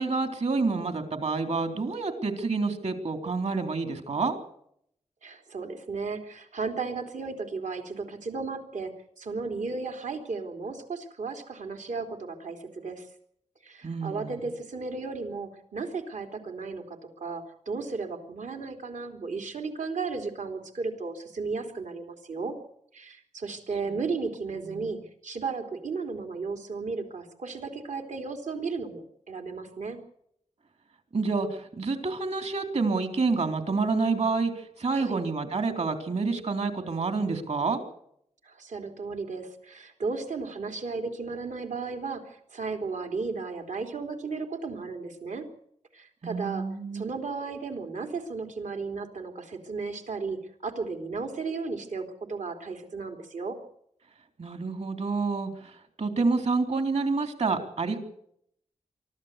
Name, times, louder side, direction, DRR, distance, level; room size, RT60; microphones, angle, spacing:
voice 1, 0.0-4.4 13.8-14.4 24.7-24.9 31.1-37.8 46.2-47.1 54.4-58.0, right 4 dB, 60° right, 6 dB, 3.7 m, -28 dB
voice 2, 5.2-8.9 9.2-13.1 13.6-22.5 22.9-25.0 25.2-30.0 35.0-35.2 38.4-45.4 45.9-46.6 46.9-53.6, right 4 dB, 85° right, 5 dB, 3.5 m, -34 dB
24.0 x 14.0 x 8.4 m, 0.71 s
wide cardioid pair, 110°, 12 cm